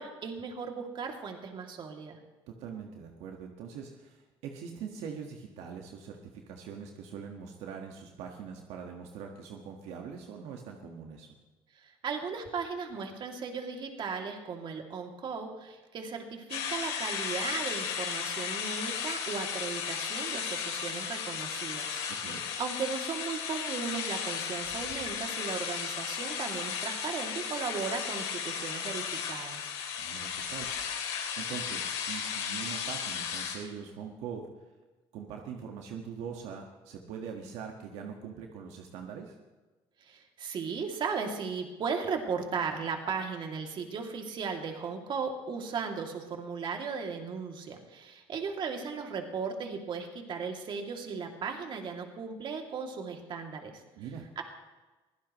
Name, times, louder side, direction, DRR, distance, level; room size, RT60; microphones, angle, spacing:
voice 1, 0.0-2.2 11.8-22.0 22.3-29.7 40.0-53.8 54.4-54.5, right 5 dB, 45° right, 2 dB, 2.7 m, -36 dB
voice 2, 2.5-11.3 22.1-22.4 30.0-31.0 31.3-34.5 35.1-39.3 53.9-54.3, right 7 dB, 80° right, 2 dB, 1.7 m, -42 dB
sound 1, 16.5-33.5, left 7 dB, 80° left, 3.4 m, -35 dB
23.5 x 16.5 x 3.2 m, 1.2 s
cardioid pair, 105°, 11 cm